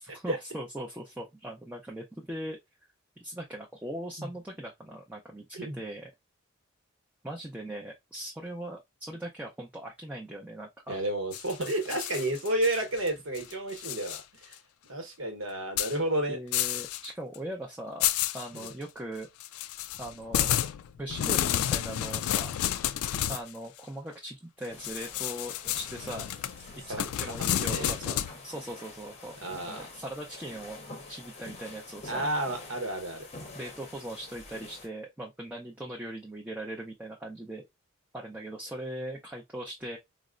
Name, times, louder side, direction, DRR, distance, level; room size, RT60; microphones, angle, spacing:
voice 1, 0.0-2.6 3.2-6.1 7.2-11.0 16.3-18.1 18.3-19.3 20.0-20.5 21.0-22.6 23.3-26.3 26.9-29.4 29.7-30.8 31.1-32.3 33.5-37.6 38.1-40.0, right 1 dB, 5° right, 0.4 m, -40 dB
voice 2, 10.9-14.5 14.9-16.4 18.5-18.7 26.9-27.1 27.4-28.2 29.4-29.9 32.1-33.3, right 1 dB, 70° right, 1.0 m, -31 dB
sound 1, 11.3-13.1 13.3-14.2 14.5-14.6 15.8-15.9 16.5-17.1 17.3-17.4 18.0-18.7 19.4-23.5 24.8-28.3, left 12 dB, 90° left, 0.3 m, -31 dB
sound 2, 24.7-34.9, left 2 dB, 30° left, 0.7 m, -47 dB
4.1 x 2.0 x 2.4 m
head